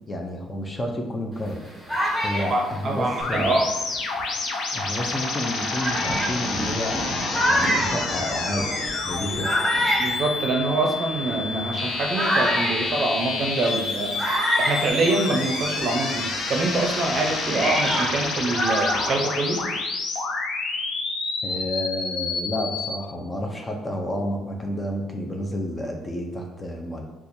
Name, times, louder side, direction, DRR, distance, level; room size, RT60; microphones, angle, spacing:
voice 1, 0.1-1.6 2.2-3.6 4.7-9.6 21.4-27.0, left 1 dB, 20° left, 1 dB, 0.5 m, -30 dB
sound 1, 1.4-4.5 5.1-5.2 5.7-15.7 16.0-19.8, equal, 5° left, 1.0 m, -28 dB
voice 2, 2.5-3.7 10.0-14.2 14.6-19.6, right 2 dB, 45° right, 1 dB, 0.6 m, -25 dB
sound 2, 3.2-22.9, left 3 dB, 70° left, 0.6 m, -29 dB
4.2 x 2.4 x 2.6 m, 1.0 s
cardioid pair, 120°, 0 cm